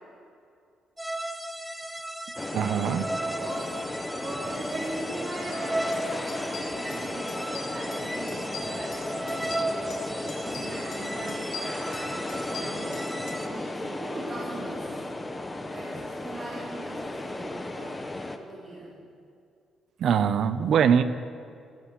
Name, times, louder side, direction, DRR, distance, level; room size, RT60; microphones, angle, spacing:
sound 1, 1.0-13.5, right 1 dB, 5° right, 0.8 m, -36 dB
sound 2, 2.4-18.4, left 2 dB, 15° left, 1.1 m, -35 dB
voice 1, 2.5-3.1 20.0-21.0, right 8 dB, 65° right, 13 dB, 0.7 m, -22 dB
voice 2, 3.3-3.8 4.2-13.1 13.5-15.0 15.7-18.9, right 2 dB, 35° right, -8 dB, 4.1 m, -40 dB
sound 3, 5.5-5.6 5.9-6.0 6.3-7.0 7.3-8.0 8.3-10.0 10.3-11.0 11.3-13.4, left 5 dB, 65° left, 4.4 m, -41 dB
17.0 x 7.5 x 8.2 m, 2.4 s
cardioid pair, 90°, 0 cm